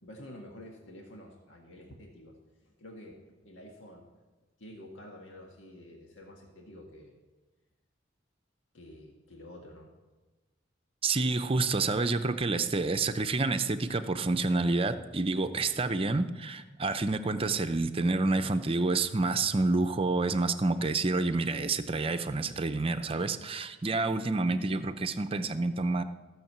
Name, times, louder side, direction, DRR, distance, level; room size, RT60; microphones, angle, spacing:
voice 1, 0.0-2.4 2.6-4.1 4.6-7.1 8.7-9.9, left 1 dB, 85° left, 0 dB, 1.7 m, -49 dB
voice 2, 11.0-26.0, right 3 dB, 30° right, 9 dB, 0.6 m, -28 dB
15.5 x 6.5 x 7.4 m, 1.2 s
head